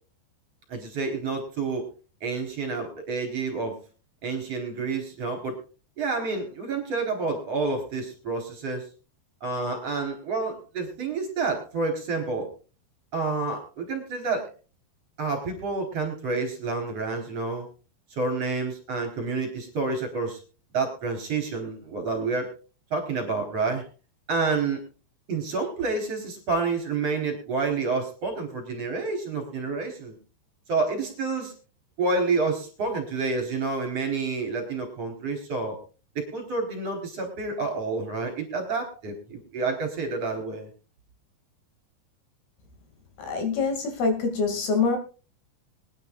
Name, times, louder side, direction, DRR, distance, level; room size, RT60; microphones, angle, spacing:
voice 1, 0.7-1.8 2.2-3.8 4.2-5.6 6.0-8.8 9.4-12.5 13.1-14.5 15.2-17.7 18.1-20.4 20.7-22.5 22.9-23.8 24.3-24.8 25.3-30.2 30.7-31.5 32.0-35.8 36.1-40.7, right 4 dB, 35° right, 4 dB, 4.6 m, -29 dB
voice 2, 43.2-45.0, left 4 dB, 65° left, 5 dB, 4.1 m, -25 dB
25.0 x 10.5 x 2.4 m, 0.35 s
omnidirectional pair, 5.0 m